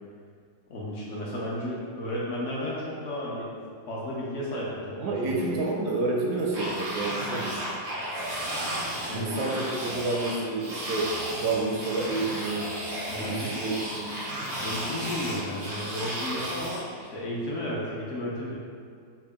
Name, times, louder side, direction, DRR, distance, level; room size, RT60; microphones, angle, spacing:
voice 1, 0.7-3.5 3.9-5.6 9.1-9.4 13.1-13.6 14.6-18.5, left 1 dB, 65° left, -6 dB, 0.7 m, -33 dB
voice 2, 5.0-7.5 9.1-11.1 11.4-12.7 13.2-14.2, right 3 dB, 75° right, -2 dB, 1.0 m, -29 dB
sound 1, 6.5-16.8, right 1 dB, 90° right, 0.6 m, -34 dB
4.5 x 2.1 x 3.4 m, 2.1 s
omnidirectional pair, 2.0 m